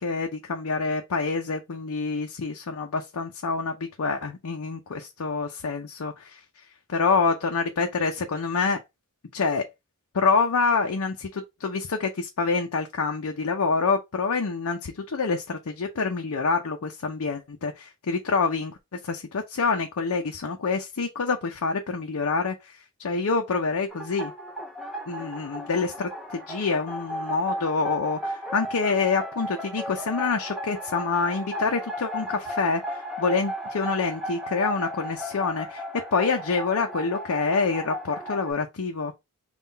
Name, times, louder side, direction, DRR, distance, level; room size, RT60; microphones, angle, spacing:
voice 1, 0.0-6.4 6.9-8.8 9.3-9.6 10.1-24.3 25.1-35.8 36.1-39.1, left 4 dB, 75° left, 0.6 m, -27 dB
sound 1, 23.9-38.5, equal, ahead, 0.9 m, -35 dB
3.8 x 2.4 x 4.0 m
head